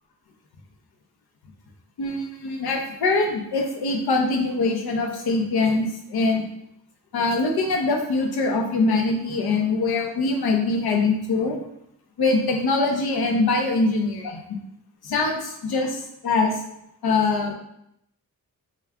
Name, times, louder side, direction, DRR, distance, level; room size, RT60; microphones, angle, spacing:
voice 1, 2.0-6.5 7.1-11.6 12.2-14.4 15.0-16.6 17.0-17.5, left 3 dB, 85° left, 2 dB, 0.8 m, -23 dB
3.5 x 2.4 x 4.3 m, 0.78 s
cardioid pair, 55°, 37 cm